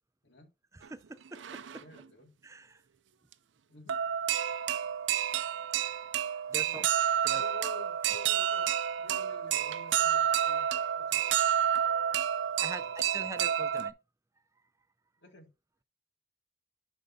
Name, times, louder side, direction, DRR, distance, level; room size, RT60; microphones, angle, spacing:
voice 1, 0.7-1.8 2.4-2.8 5.4-6.0 6.3-6.8 7.2-7.4 12.6-13.9, right 2 dB, 15° right, 0.4 m, -45 dB
sound 1, 0.8-0.9 1.3-2.0 3.3-3.4 3.9-13.9, right 9 dB, 90° right, 0.5 m, -29 dB
voice 2, 1.8-2.3 3.7-4.0 6.7-6.9 7.3-8.7 9.0-11.5 12.8-13.2 13.6-13.8 15.2-15.5, left 4 dB, 80° left, 2.1 m, -52 dB
11.0 x 5.2 x 2.6 m
head